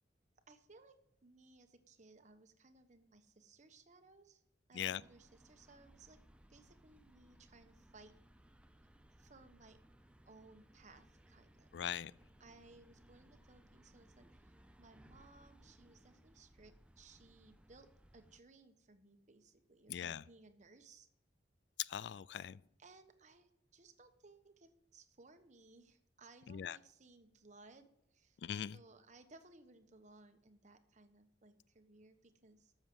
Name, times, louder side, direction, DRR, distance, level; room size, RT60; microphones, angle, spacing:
voice 1, 0.5-4.4 4.7-6.2 6.5-8.1 9.2-9.8 10.2-11.7 12.4-17.9 18.1-21.1 22.8-32.7, right 3 dB, 40° right, 1.1 m, -62 dB
sound 1, 5.0-18.4, right 1 dB, 5° right, 0.6 m, -64 dB
voice 2, 11.7-12.1 19.9-20.2 21.8-22.6 26.5-26.8 28.4-28.8, left 9 dB, 65° left, 0.3 m, -40 dB
13.0 x 7.2 x 6.1 m
head